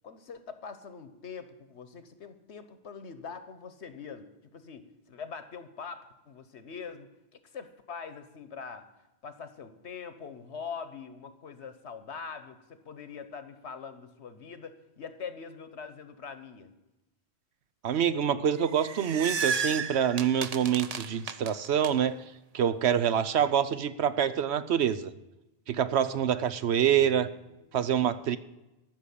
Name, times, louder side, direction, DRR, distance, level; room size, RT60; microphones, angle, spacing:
voice 1, 0.0-8.9 9.2-16.7 27.0-27.7, left 6 dB, 85° left, 11 dB, 1.4 m, -43 dB
voice 2, 17.8-22.2 22.5-25.1 25.7-27.3 27.7-28.4, right 9 dB, 80° right, 13 dB, 1.0 m, -26 dB
sound 1, 18.6-21.9, right 5 dB, 40° right, 0.7 m, -33 dB
14.0 x 6.4 x 8.4 m, 0.99 s
omnidirectional pair, 1.1 m